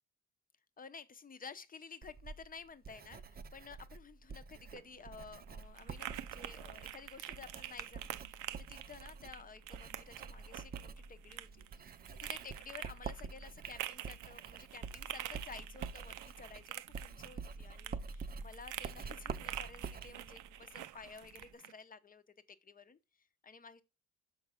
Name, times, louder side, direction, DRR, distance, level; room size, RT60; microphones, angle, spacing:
voice 1, 0.8-11.9 12.2-22.2 22.6-23.8, left 5 dB, 30° left, 0.8 m, -53 dB
Writing, 2.0-21.5, right 5 dB, 30° right, 0.5 m, -48 dB
sound 1, 4.6-21.7, right 14 dB, 85° right, 0.5 m, -47 dB
6.0 x 4.6 x 5.6 m
cardioid pair, 90°, 30 cm